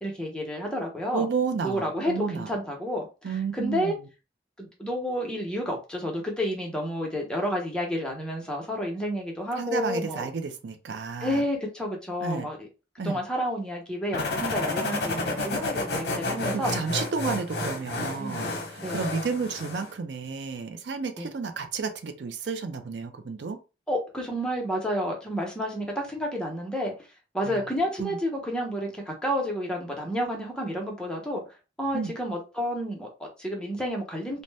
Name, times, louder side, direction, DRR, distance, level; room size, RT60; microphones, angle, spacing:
voice 1, 0.0-1.3 1.6-4.0 4.6-10.3 11.2-12.7 13.0-16.7 18.2-18.4 18.8-19.1 21.2-21.3 23.9-26.9 27.3-31.4 31.8-34.4, equal, 5° left, 0.7 m, -30 dB
voice 2, 1.1-2.5 3.2-3.9 9.6-11.4 12.2-12.5 13.0-13.2 16.2-23.6 27.5-27.6 28.0-28.2 31.9-32.1, right 5 dB, 75° right, 0.5 m, -31 dB
sound 1, 14.1-19.9, left 2 dB, 65° left, 0.7 m, -31 dB
2.6 x 2.1 x 3.3 m
head